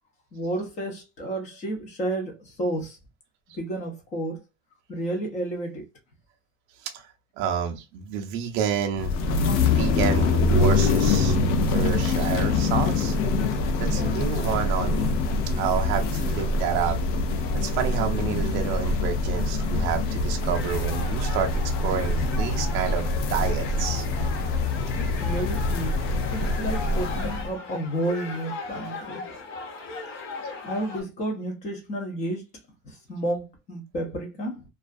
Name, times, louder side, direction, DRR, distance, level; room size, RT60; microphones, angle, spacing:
voice 1, 0.3-3.0 3.6-4.4 4.9-5.8 25.0-26.0 26.3-29.3 30.6-32.4 33.1-34.6, right 1 dB, 20° left, 0.5 m, -31 dB
voice 2, 7.4-9.1 9.6-11.4 11.7-13.2 13.8-15.2 15.5-17.0 17.6-21.5 21.8-24.0, right 8 dB, 40° right, 0.4 m, -29 dB
sound 1, 8.9-27.5, left 3 dB, 80° left, 0.6 m, -24 dB
sound 2, 20.5-31.0, left 4 dB, 50° left, 0.9 m, -38 dB
2.3 x 2.3 x 2.4 m
cardioid pair, 175°, 36 cm